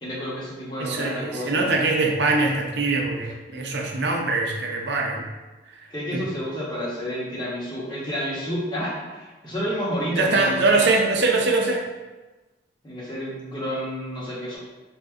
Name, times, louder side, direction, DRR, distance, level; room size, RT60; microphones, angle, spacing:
voice 1, 0.0-1.7 5.9-10.6 12.8-14.6, equal, 25° left, -8 dB, 0.9 m, -30 dB
voice 2, 0.8-5.3 5.7-5.8 6.1-6.2 10.1-11.9, right 3 dB, 60° right, 0 dB, 0.5 m, -23 dB
4.2 x 2.6 x 2.3 m, 1.2 s
head